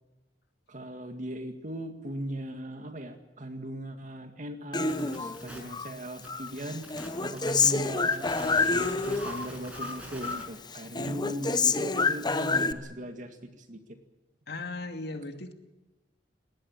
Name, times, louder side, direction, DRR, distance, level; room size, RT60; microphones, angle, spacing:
voice 1, 0.7-13.4 13.7-13.8, right 1 dB, 45° right, 6 dB, 2.0 m, -38 dB
Human voice, 4.7-5.9 6.3-9.5 9.7-10.5 10.7-12.7, left 4 dB, 25° left, 1.0 m, -28 dB
sound 1, 4.9-10.4, equal, 5° right, 7.1 m, -44 dB
voice 2, 14.5-15.5, left 3 dB, 65° left, 6 dB, 2.5 m, -37 dB
22.0 x 19.0 x 8.7 m, 1.1 s
head